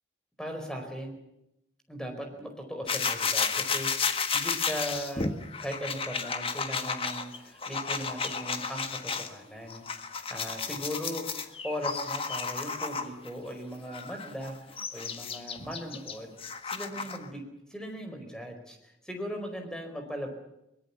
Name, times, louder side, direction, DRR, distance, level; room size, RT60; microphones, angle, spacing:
voice 1, 0.4-1.2 1.9-5.3 5.6-17.4 17.7-20.3, equal, 5° left, 4 dB, 4.8 m, -38 dB
Brushing teeth, 2.9-9.3 9.7-13.3 13.9-17.3, left 5 dB, 30° left, 1.6 m, -32 dB
23.0 x 21.0 x 7.2 m, 0.84 s
head